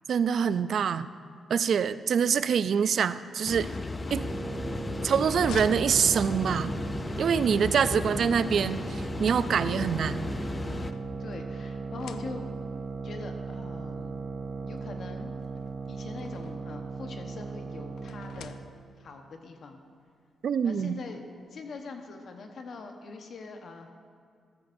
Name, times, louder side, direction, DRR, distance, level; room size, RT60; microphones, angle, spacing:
voice 1, 0.1-1.1 1.5-3.7 4.1-4.2 5.0-6.7 7.2-10.3 20.4-21.0, right 7 dB, 60° right, 14 dB, 0.3 m, -25 dB
sound 1, 3.5-10.9, left 2 dB, 20° left, 0.4 m, -35 dB
sound 2, 3.6-6.8 8.1-9.2 10.1-11.5 11.8-12.8 13.7-13.8 14.1-14.2 15.4-16.8 18.0-19.1, left 7 dB, 85° left, 0.4 m, -47 dB
sound 3, 4.1-18.7, right 4 dB, 40° right, 0.7 m, -38 dB
voice 2, 11.2-12.5 13.0-14.2 14.6-15.4 15.9-18.6 19.0-19.8 20.6-21.2 21.5-23.9, left 4 dB, 55° left, 4 dB, 1.1 m, -43 dB
14.0 x 13.5 x 2.6 m, 2.3 s
cardioid pair, 130°, 0 cm